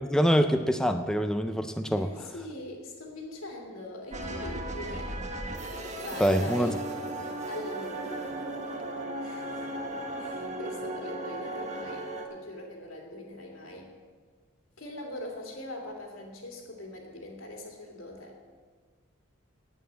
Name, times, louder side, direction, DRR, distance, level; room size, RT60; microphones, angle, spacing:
voice 1, 0.0-2.1 6.2-6.7, equal, 5° left, 7 dB, 0.3 m, -25 dB
voice 2, 2.0-5.1 6.0-6.8 7.5-8.4 9.2-9.7 10.2-13.9 14.8-18.3, left 1 dB, 90° left, 0 dB, 2.6 m, -41 dB
sound 1, 4.1-12.2, right 1 dB, 35° right, 1.2 m, -36 dB
9.1 x 8.9 x 7.5 m, 1.5 s
head